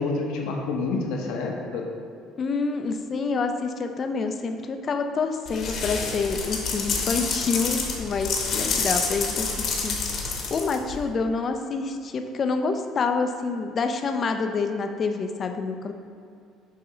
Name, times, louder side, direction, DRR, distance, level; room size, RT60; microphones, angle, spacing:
voice 1, 0.0-1.9, left 3 dB, 80° left, 0 dB, 0.9 m, -28 dB
voice 2, 2.4-15.9, left 4 dB, 40° left, 6 dB, 0.5 m, -27 dB
sound 1, 5.5-11.0, left 4 dB, 55° left, 1.1 m, -28 dB
7.0 x 2.8 x 5.0 m, 2.5 s
supercardioid pair, 100°, 0 cm